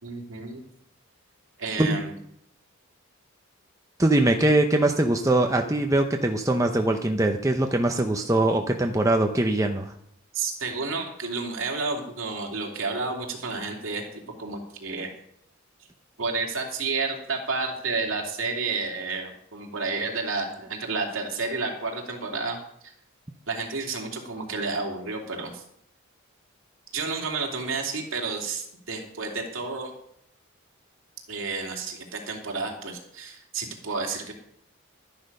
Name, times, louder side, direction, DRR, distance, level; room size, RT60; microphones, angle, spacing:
voice 1, 0.0-0.6 1.6-2.2 10.3-15.1 16.2-22.6 22.8-22.9 23.5-25.6 26.9-29.9 31.3-34.3, right 4 dB, 65° right, 1 dB, 2.8 m, -31 dB
voice 2, 4.0-9.9, right 1 dB, 15° right, 4 dB, 0.8 m, -22 dB
12.5 x 10.0 x 5.4 m, 0.71 s
head